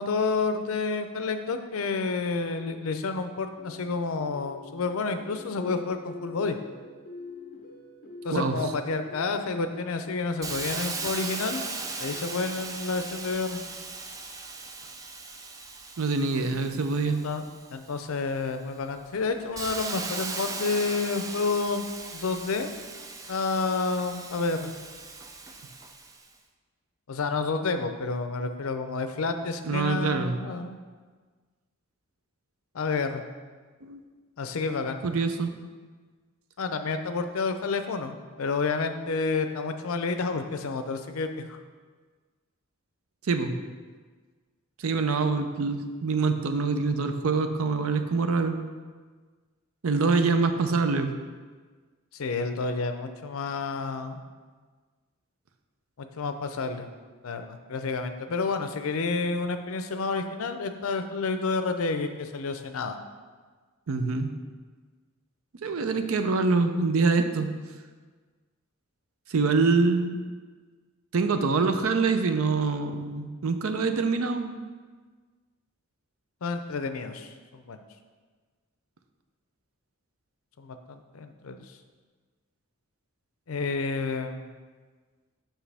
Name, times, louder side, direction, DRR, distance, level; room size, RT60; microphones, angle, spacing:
voice 1, 0.0-6.6 8.2-11.6 12.0-13.6 17.0-17.4 17.7-21.9 22.1-22.7 23.3-24.7 27.1-30.8 32.7-33.2 34.4-35.0 36.6-41.6 52.1-54.2 56.0-56.9 57.2-63.0 76.4-77.8 80.6-81.6 83.5-84.6, left 4 dB, 80° left, 8 dB, 0.5 m, -30 dB
sound 1, 3.6-13.7, left 3 dB, 45° left, 0.8 m, -46 dB
Hiss, 10.4-18.0 18.5-26.2, right 3 dB, 15° right, 0.4 m, -38 dB
voice 2, 16.0-17.2 29.6-30.4 33.8-34.0 35.0-35.5 43.3-43.6 44.8-48.6 49.8-51.1 63.9-64.3 65.6-67.5 69.3-70.2 71.1-74.6, right 4 dB, 80° right, 8 dB, 0.6 m, -25 dB
7.3 x 5.9 x 3.4 m, 1.5 s
head